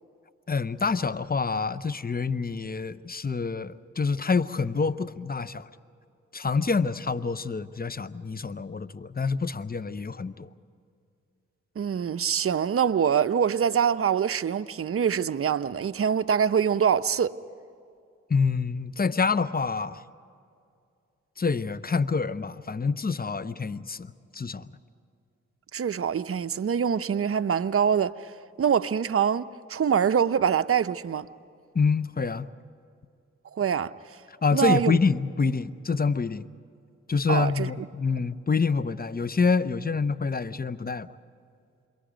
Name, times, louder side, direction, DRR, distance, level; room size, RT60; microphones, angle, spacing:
voice 1, 0.5-5.7 6.3-10.5 18.3-20.0 21.4-24.7 31.7-32.5 34.4-36.5 37.1-41.1, left 4 dB, 30° left, 0.8 m, -27 dB
voice 2, 11.8-17.4 25.7-31.3 33.5-33.9 34.5-35.0 37.3-37.7, right 7 dB, 45° right, 0.7 m, -24 dB
28.0 x 22.5 x 5.1 m
supercardioid pair, 40°, 33 cm